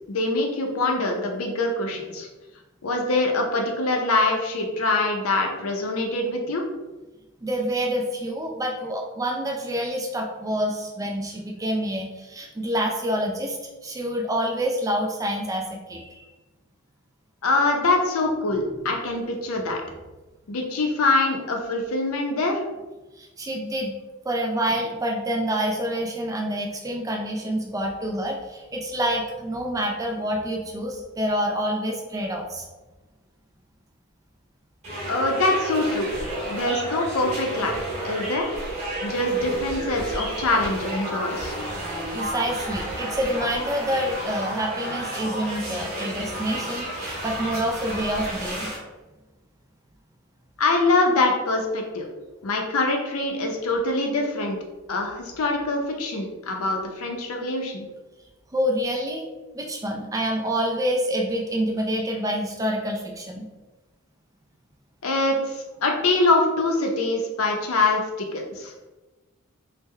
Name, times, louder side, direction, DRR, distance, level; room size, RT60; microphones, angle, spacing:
voice 1, 0.1-2.3 2.8-6.6 17.4-19.8 20.5-22.6 35.1-36.1 36.5-38.5 39.0-41.5 50.6-52.1 52.4-54.6 54.9-57.9 65.0-68.7, left 2 dB, 85° left, 2 dB, 0.6 m, -24 dB
voice 2, 7.4-16.2 23.2-23.9 24.2-32.7 42.1-48.7 58.5-59.3 59.5-63.5, equal, 15° right, 1 dB, 0.4 m, -27 dB
sound 1, 34.8-48.8, right 1 dB, 35° right, 1.2 m, -31 dB
3.5 x 2.1 x 3.2 m, 1.2 s
head